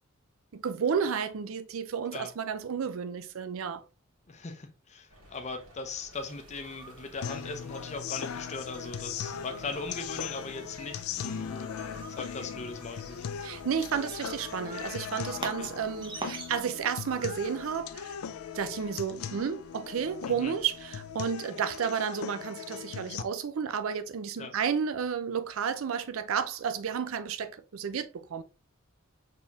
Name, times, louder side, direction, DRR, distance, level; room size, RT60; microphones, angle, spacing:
voice 1, 0.5-3.8 13.4-18.2 18.5-28.4, right 7 dB, 70° right, 0.4 m, -32 dB
voice 2, 4.3-11.7 12.1-13.3 15.4-15.7 20.3-20.5 24.4-24.5, left 3 dB, 30° left, 0.6 m, -39 dB
sound 1, 5.1-21.1, equal, 90° right, 2.3 m, -55 dB
sound 2, 6.1-17.7, right 3 dB, 20° right, 0.9 m, -47 dB
sound 3, 7.2-23.2, left 8 dB, 80° left, 0.4 m, -39 dB
4.4 x 3.5 x 2.8 m
head